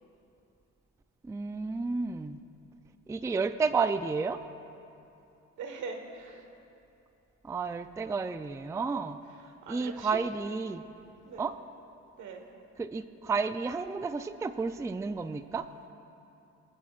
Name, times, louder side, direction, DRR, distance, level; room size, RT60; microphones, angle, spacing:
voice 1, 1.2-2.4 3.1-4.4 7.4-9.2 9.7-10.8 11.4-11.5 12.8-15.7, right 4 dB, 10° right, 11 dB, 0.3 m, -31 dB
voice 2, 5.6-6.5 9.6-10.2 11.3-11.5 12.2-12.5, right 5 dB, 80° right, 4 dB, 1.4 m, -41 dB
25.0 x 10.0 x 2.4 m, 2.8 s
cardioid pair, 90°, 30 cm